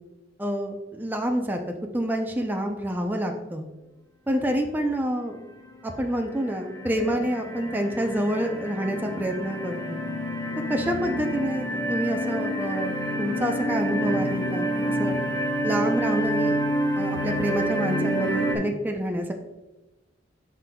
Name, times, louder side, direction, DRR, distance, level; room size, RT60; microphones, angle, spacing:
voice 1, 0.4-1.6 1.9-3.6 4.3-5.4 5.8-10.0 10.7-15.2 15.6-16.6 17.0-19.3, equal, 10° right, 3 dB, 0.5 m, -27 dB
sound 1, 5.4-5.8 6.3-18.5, equal, 20° left, 1.1 m, -28 dB
9.8 x 5.9 x 2.3 m, 1.1 s
head